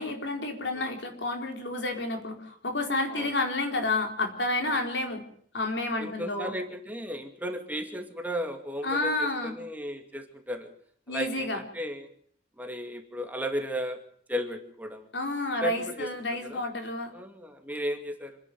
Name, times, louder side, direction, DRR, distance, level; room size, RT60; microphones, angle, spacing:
voice 1, 0.0-5.2 5.5-6.5 8.8-9.6 11.1-11.6 15.1-17.1, left 2 dB, 75° left, 4 dB, 4.4 m, -30 dB
voice 2, 6.0-10.7 11.1-12.1 12.6-14.0 14.3-15.1 15.6-16.1 16.4-16.7 17.1-18.4, equal, 10° right, 5 dB, 2.4 m, -35 dB
27.0 x 11.0 x 9.4 m, 0.62 s
head